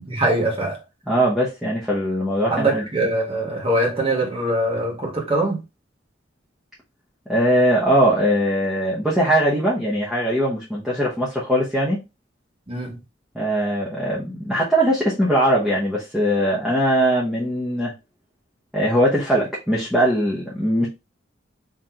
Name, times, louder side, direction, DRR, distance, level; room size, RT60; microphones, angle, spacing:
voice 1, 0.1-0.8 2.5-5.6 12.7-13.0, right 1 dB, 30° right, 1.3 m, -22 dB
voice 2, 1.1-2.9 7.3-12.0 13.3-17.9 18.7-20.9, equal, ahead, 0.9 m, -20 dB
3.8 x 3.0 x 2.8 m
head